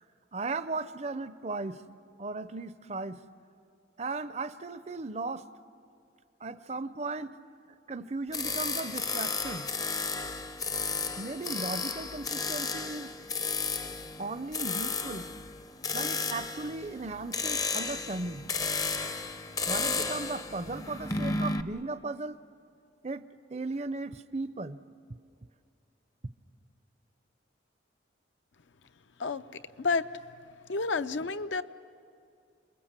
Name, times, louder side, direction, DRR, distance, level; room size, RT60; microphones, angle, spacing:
voice 1, 0.3-1.9 2.2-3.3 4.0-5.5 6.4-7.3 7.7-9.7 11.2-13.1 14.2-15.4 15.9-18.5 19.7-22.4 23.0-24.8, right 3 dB, 35° right, 14 dB, 0.5 m, -36 dB
sound 1, 8.3-21.6, left 4 dB, 20° left, 0.5 m, -33 dB
voice 2, 29.2-30.1 30.7-31.6, left 4 dB, 75° left, 11 dB, 0.6 m, -30 dB
28.5 x 21.0 x 7.4 m, 2.4 s
head